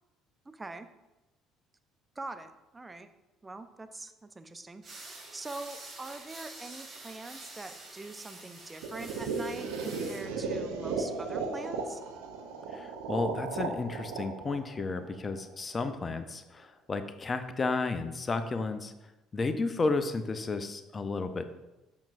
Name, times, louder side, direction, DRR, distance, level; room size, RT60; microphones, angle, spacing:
voice 1, 0.5-0.9 2.2-3.1 3.4-12.0, right 2 dB, 20° right, 9 dB, 0.6 m, -43 dB
sound 1, 4.8-10.2, right 2 dB, 40° right, 2.2 m, -47 dB
sound 2, 8.8-15.7, right 4 dB, 75° right, 0.6 m, -36 dB
voice 2, 12.7-18.9 19.3-21.5, left 3 dB, 30° left, 9 dB, 0.6 m, -32 dB
7.2 x 5.9 x 2.6 m, 1.0 s
hypercardioid pair, 55°, 0 cm